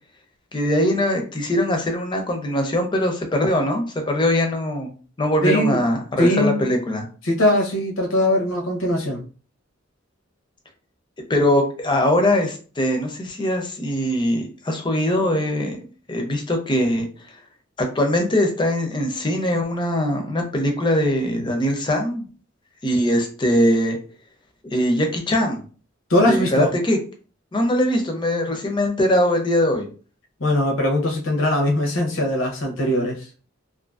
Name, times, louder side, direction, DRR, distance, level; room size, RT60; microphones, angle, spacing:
voice 1, 0.5-4.9 5.2-7.1 11.3-15.8 16.1-17.1 17.8-22.3 22.8-24.0 24.6-25.6 26.3-27.0 27.5-29.9, left 1 dB, 25° left, 4 dB, 0.5 m, -21 dB
voice 2, 5.4-5.8 6.2-6.6 7.2-9.2 26.1-26.7 30.4-33.2, left 1 dB, 80° left, 1 dB, 0.7 m, -20 dB
2.5 x 2.5 x 2.4 m, 0.38 s
head